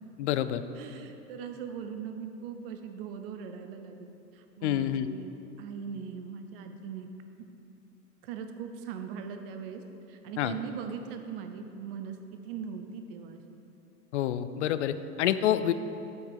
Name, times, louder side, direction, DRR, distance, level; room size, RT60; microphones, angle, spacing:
voice 1, 0.2-0.6 4.6-5.1 10.4-10.5 14.1-15.7, left 11 dB, 45° left, 12 dB, 0.5 m, -27 dB
voice 2, 0.8-4.1 4.3-5.3 5.6-7.1 8.2-13.6, right 7 dB, 35° right, 6 dB, 0.6 m, -40 dB
7.4 x 5.9 x 6.6 m, 2.9 s
figure-of-eight pair, 95°, 49 cm